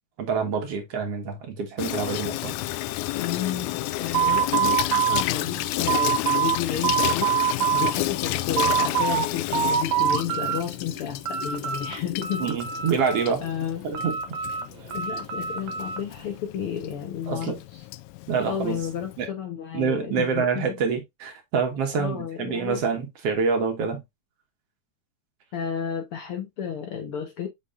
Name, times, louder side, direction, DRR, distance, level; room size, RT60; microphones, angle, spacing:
voice 1, 0.2-2.5 12.4-13.4 13.8-14.2 17.3-17.6 18.3-18.8 19.2-19.3 19.7-24.0, right 5 dB, 60° right, 2.2 m, -26 dB
Water tap faucet / Sink (filling or washing), 1.8-19.3, left 17 dB, 80° left, 1.9 m, -31 dB
voice 2, 3.2-7.3 7.7-12.5 13.4-13.9 14.9-17.6 18.4-20.8 21.9-22.8 25.5-27.5, left 8 dB, 60° left, 1.6 m, -32 dB
sound 1, 4.1-6.6 6.8-7.9 8.3-9.3 9.5-10.6 11.0-11.9 12.2-13.5 13.9-16.0, right 8 dB, 75° right, 2.3 m, -25 dB
7.3 x 5.5 x 2.4 m
omnidirectional pair, 3.4 m